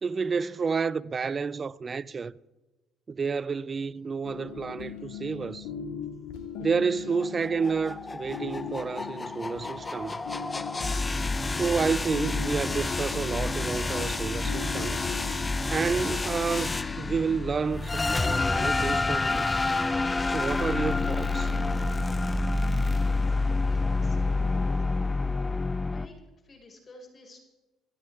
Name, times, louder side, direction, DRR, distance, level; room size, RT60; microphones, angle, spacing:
voice 1, 0.0-2.3 3.1-5.7 6.6-10.2 11.5-15.0 15.7-19.6 20.3-21.5, right 5 dB, 35° right, 0.6 m, -30 dB
sound 1, 4.2-17.1, left 7 dB, 75° left, 2.3 m, -40 dB
sound 2, 7.2-26.1, left 3 dB, 20° left, 0.9 m, -28 dB
voice 2, 22.8-24.6 25.9-27.4, left 2 dB, 40° left, 5.4 m, -52 dB
29.5 x 13.0 x 3.6 m
hypercardioid pair, 65°, 0 cm